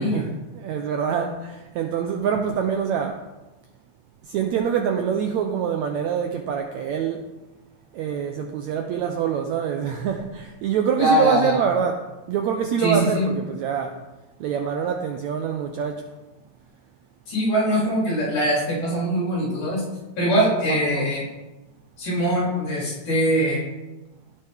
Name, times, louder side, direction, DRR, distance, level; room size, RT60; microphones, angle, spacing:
voice 1, 0.0-3.2 4.2-7.3 7.9-14.0 14.4-16.1 20.7-21.1, right 7 dB, 80° right, 4 dB, 1.7 m, -25 dB
voice 2, 11.0-11.6 12.8-13.3 17.3-19.8 20.2-21.2 22.0-23.6, equal, 60° left, -6 dB, 5.6 m, -22 dB
16.5 x 6.8 x 3.6 m, 1.1 s
omnidirectional pair, 4.0 m